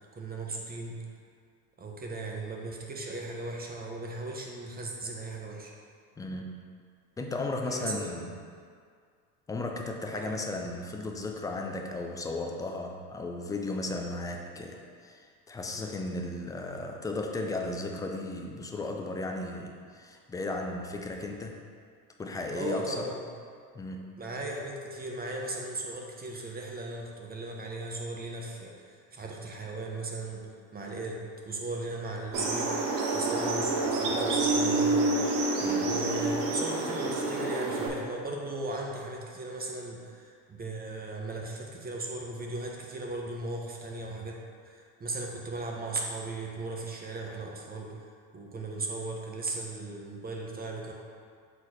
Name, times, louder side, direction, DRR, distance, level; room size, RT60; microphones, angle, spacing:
voice 1, 0.1-1.0 1.8-5.7 7.6-8.2 10.1-10.3 22.5-23.3 24.2-32.7 33.1-35.5 35.8-44.4 44.6-50.9, right 2 dB, 20° right, 0 dB, 1.0 m, -37 dB
voice 2, 6.2-6.6 7.2-8.4 9.5-21.6 22.2-23.1 23.7-24.1 35.6-36.0, left 2 dB, 10° left, 2 dB, 0.3 m, -35 dB
sound 1, 32.3-37.9, right 2 dB, 70° right, 1.2 m, -28 dB
7.0 x 4.1 x 4.4 m, 2.1 s
hypercardioid pair, 95°, 47 cm